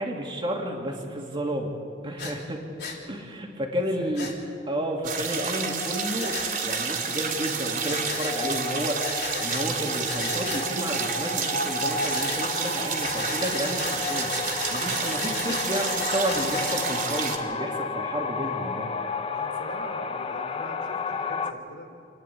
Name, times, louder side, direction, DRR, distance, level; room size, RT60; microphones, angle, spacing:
voice 1, 0.0-1.7 2.0-2.6 3.1-4.3 4.7-6.4 6.6-14.3 14.7-18.9, equal, 30° right, 0 dB, 2.7 m, -31 dB
Breathing, 2.2-2.3 2.8-3.0 4.1-4.3 6.2-6.5 7.8-8.4 9.0-9.7 10.0-10.7 12.0-12.4 13.0-16.8, left 4 dB, 65° left, 3.6 m, -34 dB
voice 2, 4.0-4.3 18.4-18.5 19.3-21.9, left 1 dB, 80° left, 2 dB, 3.7 m, -42 dB
sound 1, 5.0-17.4, right 6 dB, 50° right, 2.8 m, -30 dB
sound 2, 5.2-21.5, left 4 dB, 30° left, 0.8 m, -33 dB
29.0 x 11.0 x 8.5 m, 2.6 s
head